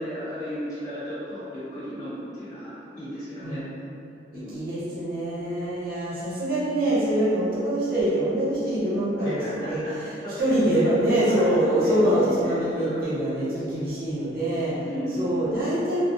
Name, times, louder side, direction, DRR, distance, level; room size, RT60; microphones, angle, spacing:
voice 1, 0.0-3.6 4.3-4.6 9.2-9.9 10.2-10.8 11.3-13.1 14.8-15.6, equal, 45° left, -13 dB, 1.5 m, -34 dB
voice 2, 4.5-14.8 15.2-16.0, right 1 dB, 55° right, -10 dB, 1.0 m, -25 dB
3.3 x 2.4 x 2.7 m, 2.7 s
head